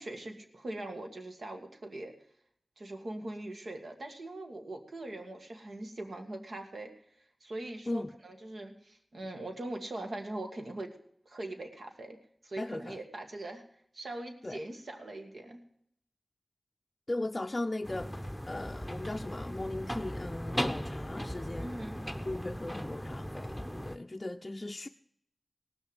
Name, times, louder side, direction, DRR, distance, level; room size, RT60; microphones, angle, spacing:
voice 1, 0.0-2.1 2.8-6.9 7.4-10.9 11.3-12.2 12.4-13.6 13.9-15.6 21.5-22.0, right 1 dB, 75° right, 4 dB, 1.9 m, -41 dB
voice 2, 12.6-13.0 14.4-14.6 17.1-21.7 22.3-24.9, left 2 dB, 35° left, 4 dB, 0.5 m, -38 dB
sound 1, 17.8-24.0, equal, ahead, 0.9 m, -38 dB
17.5 x 6.7 x 8.0 m, 0.67 s
wide cardioid pair, 50°, 0 cm